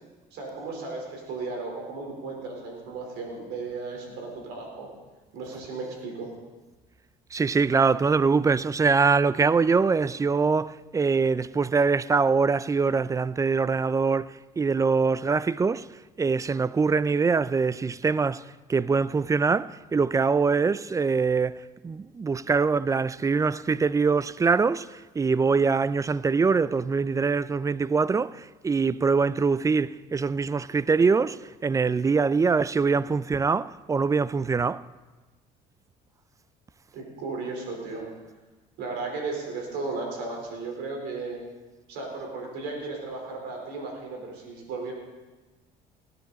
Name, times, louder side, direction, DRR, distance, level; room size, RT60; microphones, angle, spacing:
voice 1, 0.3-4.9 5.3-6.3 36.9-38.1 38.8-41.4 41.9-44.9, right 3 dB, 75° right, 4.1 m, -35 dB
voice 2, 7.3-15.9 16.2-34.9, right 4 dB, 20° right, 0.4 m, -23 dB
19.0 x 9.6 x 4.1 m
supercardioid pair, 85°, 18 cm